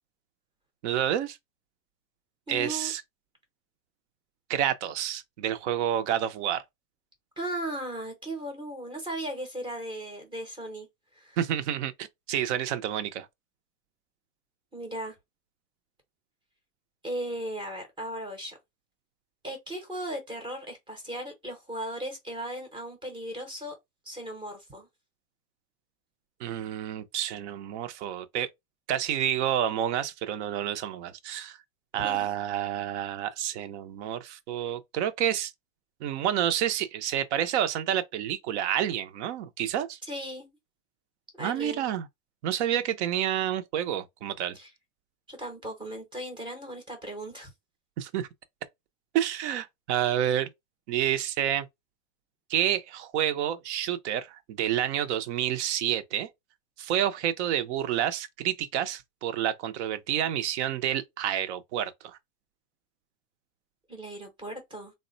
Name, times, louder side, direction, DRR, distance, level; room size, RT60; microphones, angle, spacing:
voice 1, 0.8-1.4 2.5-3.0 4.5-6.6 11.4-13.3 26.4-28.5 28.9-31.6 31.9-35.5 36.0-40.0 41.4-42.1 42.4-44.6 48.0-48.3 49.1-50.5 50.9-51.7 52.5-56.3 56.8-62.2, right 10 dB, 45° right, 0.6 m, -29 dB
voice 2, 2.5-2.9 7.4-10.9 11.1-11.4 14.7-15.2 17.0-18.6 19.4-23.7 24.0-24.9 32.0-32.3 40.1-40.5 41.4-41.8 44.5-44.7 45.3-47.5 63.9-64.9, right 1 dB, 10° right, 0.7 m, -37 dB
3.5 x 2.1 x 2.5 m
supercardioid pair, 140°, 48 cm